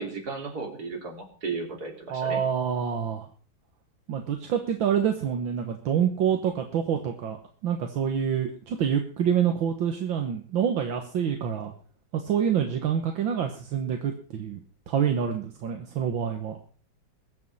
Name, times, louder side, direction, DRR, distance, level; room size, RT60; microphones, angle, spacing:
voice 1, 0.0-2.4, right 4 dB, 50° right, 1 dB, 3.9 m, -34 dB
voice 2, 2.1-3.3 4.1-7.4 7.6-11.7 12.1-14.6 14.9-16.6, right 8 dB, 75° right, 4 dB, 2.0 m, -27 dB
22.0 x 7.6 x 5.5 m, 0.42 s
omnidirectional pair, 2.1 m